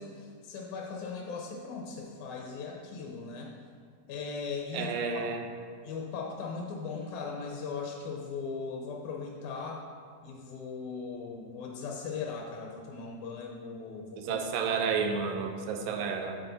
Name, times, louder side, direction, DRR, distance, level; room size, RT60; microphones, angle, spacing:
voice 1, 0.0-3.5 4.1-5.3 5.8-9.8 10.2-14.4, left 5 dB, 70° left, 0 dB, 2.1 m, -38 dB
voice 2, 4.7-5.4 14.2-16.4, right 5 dB, 90° right, 4 dB, 2.5 m, -31 dB
8.9 x 6.8 x 4.0 m, 2.1 s
omnidirectional pair, 3.8 m